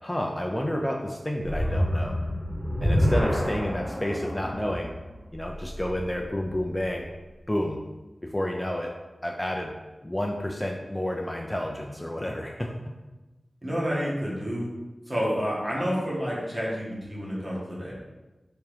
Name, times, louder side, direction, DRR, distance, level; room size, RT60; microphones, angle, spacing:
voice 1, 0.0-2.2 2.8-5.0 5.3-7.1 7.5-7.8 8.2-8.9 9.2-9.8 10.0-12.8, left 1 dB, 15° left, 0 dB, 0.3 m, -30 dB
sound 1, 1.4-6.7, equal, 10° right, 0.8 m, -28 dB
voice 2, 13.6-14.7 15.1-18.0, equal, 35° right, -6 dB, 1.2 m, -29 dB
3.5 x 2.9 x 3.2 m, 1.1 s
wide cardioid pair, 60°, 0 cm